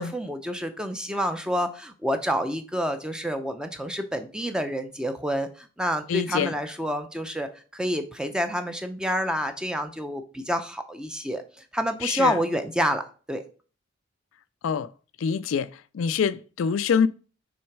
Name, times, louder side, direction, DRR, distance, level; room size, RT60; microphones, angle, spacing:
voice 1, 0.0-11.4 11.7-13.0 13.3-13.4, equal, 5° right, 0.6 m, -28 dB
voice 2, 6.1-6.5 12.0-12.4 14.6-14.9 15.2-15.7 15.9-17.1, left 6 dB, 75° left, 0.4 m, -25 dB
6.2 x 4.0 x 4.6 m
head